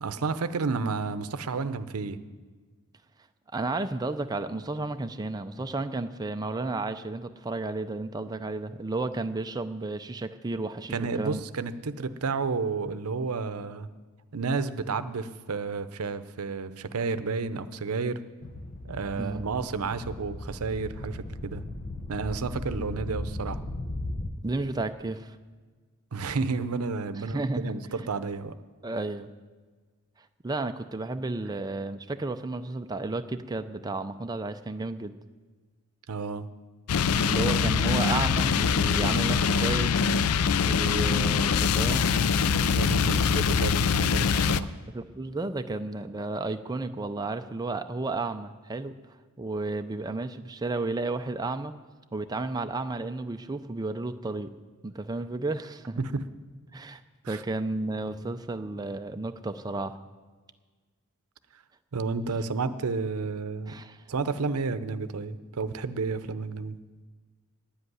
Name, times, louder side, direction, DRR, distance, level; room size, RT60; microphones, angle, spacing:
voice 1, 0.0-2.2 10.9-13.9 14.3-18.2 18.8-21.6 22.1-23.6 26.1-28.5 36.1-36.5 42.7-44.7 56.0-56.3 57.2-57.4 61.9-63.7 64.1-66.8, right 4 dB, 90° right, 12 dB, 0.6 m, -31 dB
voice 2, 3.5-11.4 19.2-19.4 24.4-25.4 27.2-27.7 28.8-29.3 30.4-35.1 37.2-40.0 40.6-42.9 44.9-48.9 49.4-51.7 52.1-54.5 54.8-56.0 56.7-57.0 57.3-60.0 63.7-64.0, right 2 dB, 20° right, 8 dB, 0.4 m, -32 dB
sound 1, 18.4-24.3, left 1 dB, 40° left, 0.8 m, -37 dB
sound 2, 36.9-44.6, left 6 dB, 85° left, 0.4 m, -23 dB
10.0 x 8.0 x 9.7 m, 1.4 s
head